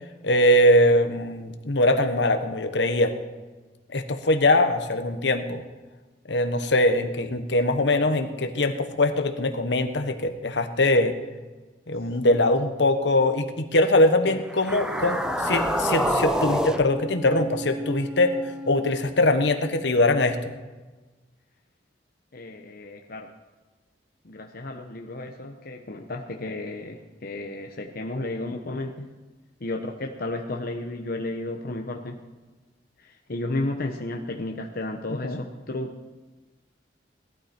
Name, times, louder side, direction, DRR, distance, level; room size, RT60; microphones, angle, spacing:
voice 1, 0.2-3.1 3.9-5.6 6.3-11.1 11.9-18.3 18.7-20.5 35.2-35.4, left 1 dB, 70° left, 7 dB, 1.2 m, -22 dB
sound 1, 14.5-18.9, equal, 5° right, 0.7 m, -28 dB
voice 2, 22.3-23.3 24.2-29.1 29.6-32.2 33.0-35.9, left 2 dB, 55° left, 2 dB, 0.9 m, -33 dB
18.5 x 12.5 x 4.4 m, 1.3 s
head